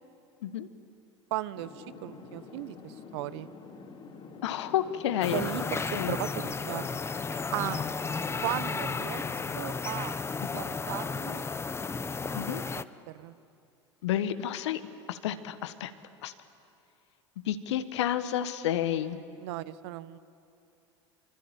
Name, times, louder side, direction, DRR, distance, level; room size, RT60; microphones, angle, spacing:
voice 1, 1.3-3.5 5.3-6.9 7.5-7.9 8.4-9.2 9.5-10.2 10.5-11.4 12.3-12.6 13.1-13.3 19.4-20.2, right 16 dB, 65° right, 16 dB, 1.0 m, -36 dB
sound 1, 1.6-9.5, left 5 dB, 35° left, 4.1 m, -47 dB
voice 2, 4.4-5.5 5.9-6.2 10.5-10.7 12.3-12.6 14.0-15.9 16.2-16.3 17.4-19.2, left 11 dB, 70° left, 12 dB, 1.4 m, -30 dB
sound 2, 5.2-12.8, left 4 dB, 15° left, 0.8 m, -33 dB
25.5 x 24.5 x 8.9 m, 2.6 s
hypercardioid pair, 80°, 15 cm